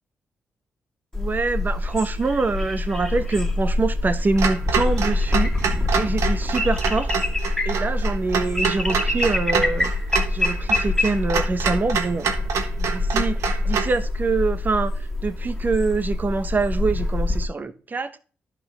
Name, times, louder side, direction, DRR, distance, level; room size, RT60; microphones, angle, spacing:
sound 1, 1.1-17.5, left 2 dB, 10° left, 2.0 m, -25 dB
voice 1, 1.1-7.1 7.6-9.9 10.3-12.3 12.8-18.1, right 3 dB, 40° right, 1.1 m, -25 dB
Clock, 4.4-14.0, right 6 dB, 85° right, 1.2 m, -27 dB
11.0 x 6.0 x 3.4 m
cardioid pair, 65°, 5 cm